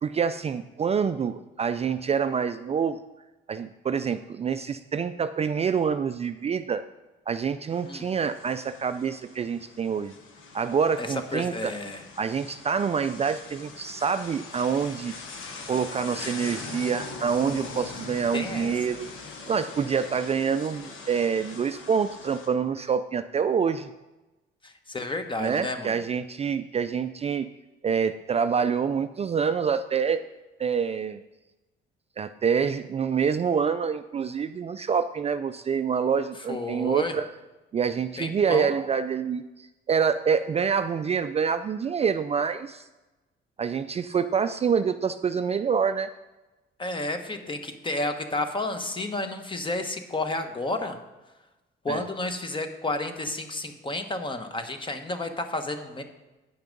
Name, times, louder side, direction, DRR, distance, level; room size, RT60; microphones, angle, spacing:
voice 1, 0.0-3.0 3.5-6.8 7.3-10.1 10.5-11.7 12.2-15.1 15.7-19.1 19.5-23.9 25.4-27.5 27.8-30.2 30.6-31.2 32.2-37.3 37.7-42.9 43.6-46.1 51.9-52.0, right 6 dB, 30° right, 10 dB, 0.3 m, -26 dB
sound 1, 7.7-22.5, left 3 dB, 85° left, 1.2 m, -42 dB
voice 2, 11.0-12.0 18.3-18.7 24.6-25.9 36.5-37.2 38.2-38.7 46.8-51.0 51.8-56.0, left 2 dB, 25° left, 7 dB, 1.0 m, -31 dB
9.2 x 5.7 x 5.2 m, 1.1 s
cardioid pair, 90°, 20 cm